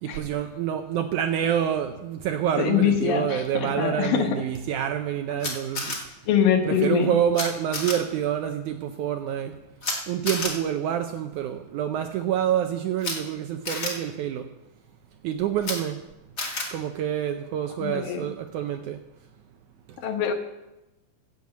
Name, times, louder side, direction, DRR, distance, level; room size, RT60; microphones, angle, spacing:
voice 1, 0.0-5.9 6.6-9.5 10.1-14.4 15.2-16.0 16.7-19.0, right 10 dB, 75° right, 7 dB, 1.8 m, -27 dB
voice 2, 2.6-4.4 6.3-7.1 17.8-18.3 20.0-20.3, left 9 dB, 75° left, 5 dB, 3.0 m, -23 dB
Camera, 5.4-6.0 7.3-7.4 7.7-7.9 9.8-9.9 10.2-10.5 13.0-13.1 13.6-13.9 15.6-15.7 16.4-16.6, left 3 dB, 30° left, 1.9 m, -29 dB
15.5 x 6.9 x 7.9 m, 0.95 s
omnidirectional pair, 4.1 m